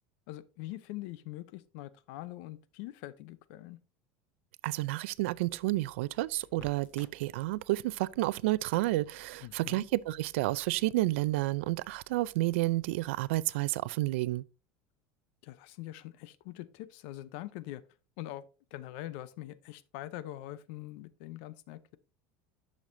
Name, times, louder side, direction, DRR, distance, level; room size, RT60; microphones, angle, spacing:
voice 1, 0.3-3.8 9.4-9.8 15.4-17.8 18.2-18.4 18.7-22.0, left 15 dB, 70° left, 0.6 m, -43 dB
voice 2, 4.6-14.5, right 18 dB, 85° right, 0.4 m, -30 dB
Crackle, 5.2-13.4, left 1 dB, 25° left, 4.5 m, -61 dB
10.5 x 6.4 x 2.6 m
supercardioid pair, 150°, 6 cm